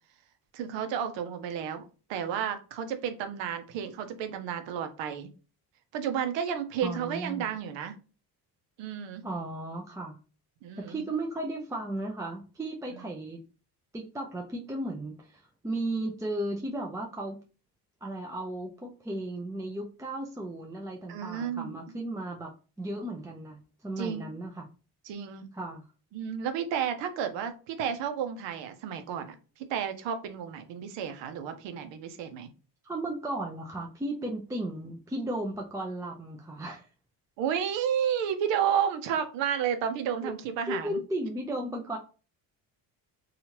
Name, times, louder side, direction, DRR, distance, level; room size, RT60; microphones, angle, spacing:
voice 1, 0.5-5.3 5.9-7.9 8.8-9.2 10.6-11.0 21.1-21.8 24.0-24.3 25.1-25.5 26.1-32.5 37.4-41.0, right 8 dB, 85° right, 8 dB, 0.7 m, -32 dB
voice 2, 6.8-7.5 9.2-10.2 10.9-13.4 13.9-17.4 18.0-22.5 22.8-24.6 25.5-25.8 32.8-36.9 40.2-40.3 40.7-42.0, right 1 dB, 10° right, 0 dB, 0.5 m, -35 dB
2.8 x 2.4 x 2.9 m, 0.35 s
supercardioid pair, 75°, 43 cm